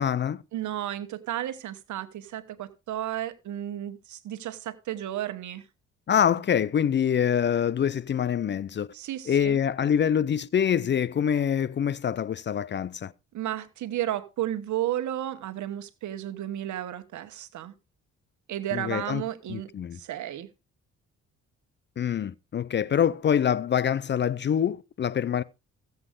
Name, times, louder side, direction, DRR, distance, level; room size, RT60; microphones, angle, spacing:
voice 1, 0.0-0.4 6.1-8.9 9.3-13.1 18.7-19.2 19.5-20.0 22.0-25.4, left 8 dB, 35° left, 0.5 m, -25 dB
voice 2, 0.5-5.6 8.9-9.6 13.3-17.7 18.5-19.7 19.9-20.5, right 12 dB, 70° right, 1.3 m, -33 dB
15.0 x 8.0 x 3.7 m
cardioid pair, 90°, 30 cm